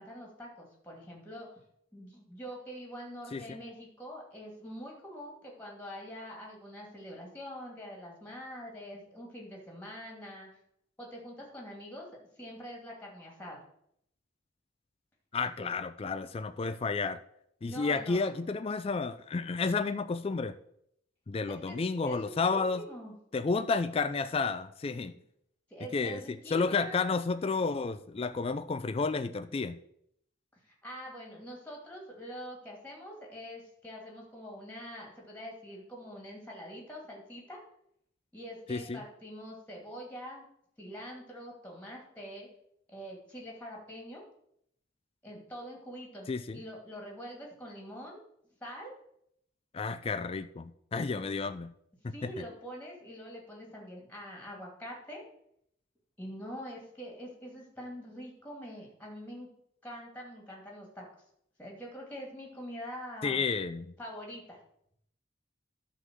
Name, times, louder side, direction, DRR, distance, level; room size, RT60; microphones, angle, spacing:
voice 1, 0.0-1.6 1.9-10.5 11.0-12.1 12.4-13.6 15.4-15.8 17.6-18.4 21.5-23.1 25.7-27.2 30.6-37.6 38.3-40.4 40.8-42.5 42.9-44.2 45.2-48.2 48.6-48.9 50.0-50.1 51.0-51.4 52.1-55.2 56.2-59.5 59.8-61.1 61.6-63.4 64.0-64.6, equal, 10° left, -1 dB, 2.4 m, -45 dB
voice 2, 15.3-17.2 17.6-20.5 21.3-22.8 23.3-25.1 25.9-29.8 38.7-39.0 46.3-46.6 49.7-51.7 52.0-52.3 63.2-63.9, left 4 dB, 30° left, 11 dB, 0.4 m, -31 dB
11.0 x 3.8 x 7.5 m, 0.72 s
head